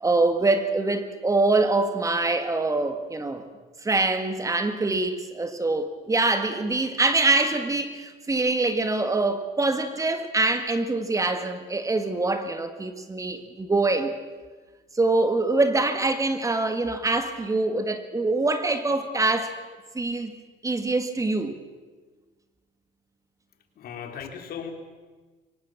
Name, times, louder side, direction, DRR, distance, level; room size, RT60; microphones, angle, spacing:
voice 1, 0.0-3.5 3.8-14.1 14.9-19.6 19.9-20.3 20.6-21.6, right 2 dB, 20° right, 9 dB, 1.9 m, -24 dB
voice 2, 23.8-24.7, left 7 dB, 60° left, 6 dB, 3.1 m, -37 dB
23.5 x 19.0 x 7.3 m, 1.4 s
cardioid pair, 110°, 17 cm